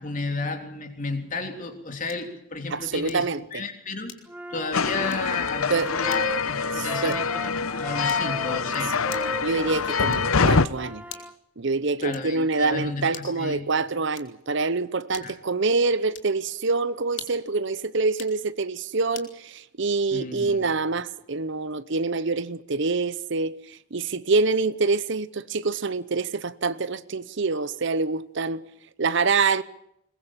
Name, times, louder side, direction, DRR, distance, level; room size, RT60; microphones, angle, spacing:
voice 1, 0.0-4.1 4.5-9.0 12.0-13.7 15.2-15.3 20.1-20.6, left 3 dB, 40° left, 3.4 m, -33 dB
sound 1, 2.1-2.4 3.1-3.4 4.1-4.5 5.1-5.4 6.1-6.4 7.1-7.4 8.1-8.5 9.1-9.5 10.1-10.5 11.1-11.5 12.1-12.5 13.1-13.5 14.1-14.5 15.1-15.5 16.1-16.4 17.1-17.5 18.1-18.4 19.1-19.4, left 9 dB, 65° left, 2.9 m, -44 dB
voice 2, 2.7-3.6 5.7-5.9 6.7-7.2 9.4-11.0 11.6-28.6 29.0-29.6, right 3 dB, 55° right, 0.8 m, -26 dB
Wind instrument woodwind instrument, 4.3-11.3, equal, 5° right, 1.2 m, -37 dB
sound 2, 4.7-10.7, left 5 dB, 80° left, 0.9 m, -25 dB
22.0 x 21.0 x 7.3 m
head